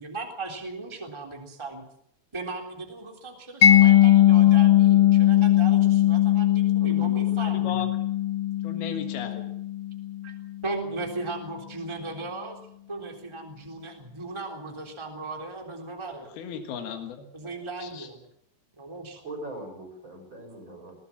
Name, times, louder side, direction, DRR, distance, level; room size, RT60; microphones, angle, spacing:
voice 1, 0.0-1.8 2.3-8.0 10.2-10.3 10.6-12.6 12.9-16.3 17.3-18.2 18.8-19.2, right 3 dB, 10° right, 2 dB, 3.2 m, -37 dB
Mallet percussion, 3.6-10.4, left 12 dB, 60° left, 1.4 m, -19 dB
voice 2, 6.8-7.4 19.1-20.9, right 2 dB, 30° right, 4 dB, 5.9 m, -41 dB
voice 3, 7.4-7.9 8.6-9.5 16.3-17.3 17.8-18.1, left 7 dB, 85° left, 5 dB, 3.6 m, -35 dB
22.0 x 18.5 x 7.3 m, 0.71 s
omnidirectional pair, 4.3 m